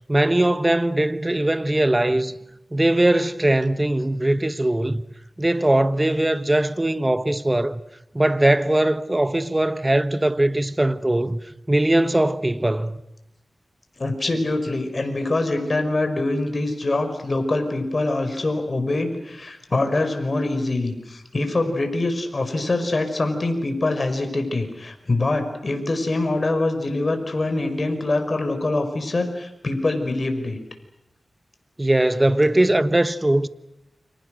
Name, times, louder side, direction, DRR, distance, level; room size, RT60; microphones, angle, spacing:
voice 1, 0.1-2.3 2.7-5.0 5.4-7.8 8.1-11.4 11.7-13.0 31.8-33.5, right 1 dB, 20° right, 1.3 m, -20 dB
voice 2, 14.0-30.6, left 2 dB, 50° left, 5.3 m, -24 dB
29.5 x 26.0 x 6.5 m
cardioid pair, 50°, 0 cm